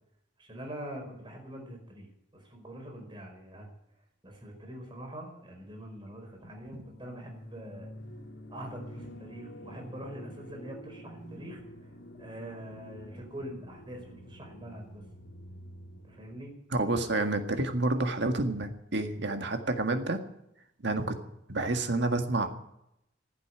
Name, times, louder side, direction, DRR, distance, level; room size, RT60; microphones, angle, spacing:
voice 1, 0.4-2.1 2.3-3.7 4.2-7.9 8.5-11.9 12.2-15.0 16.0-16.5, right 1 dB, 25° right, 1 dB, 4.9 m, -44 dB
sound 1, 6.4-16.3, equal, 85° left, 3.5 m, -48 dB
voice 2, 16.8-20.2 20.8-21.2 21.5-22.5, right 2 dB, 65° right, 6 dB, 1.9 m, -29 dB
15.5 x 8.4 x 9.9 m, 0.80 s
head